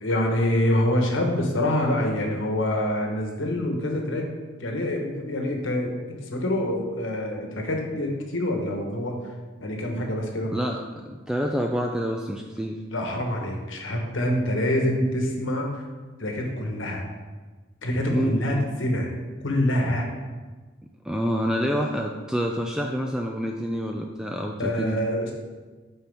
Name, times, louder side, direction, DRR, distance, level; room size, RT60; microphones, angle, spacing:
voice 1, 0.0-4.3 4.6-5.9 6.2-9.2 9.6-10.5 12.9-15.8 16.2-17.1 17.8-19.1 19.4-20.1 24.6-25.3, left 1 dB, 75° left, 1 dB, 1.2 m, -26 dB
voice 2, 10.5-12.8 18.1-18.4 21.0-25.0, equal, 5° right, 2 dB, 0.3 m, -27 dB
9.1 x 4.4 x 3.5 m, 1.3 s
head